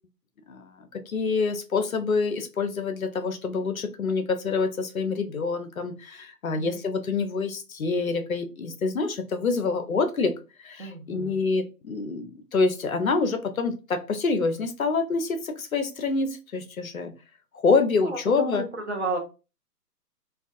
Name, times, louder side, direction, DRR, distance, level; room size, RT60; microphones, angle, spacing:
voice 1, 1.1-10.3 10.6-17.1 17.6-18.6, left 4 dB, 60° left, 7 dB, 0.5 m, -26 dB
voice 2, 10.8-11.4 18.0-19.2, right 2 dB, 45° right, 4 dB, 0.6 m, -32 dB
2.3 x 2.3 x 2.6 m, 0.31 s
figure-of-eight pair, 145°, 49 cm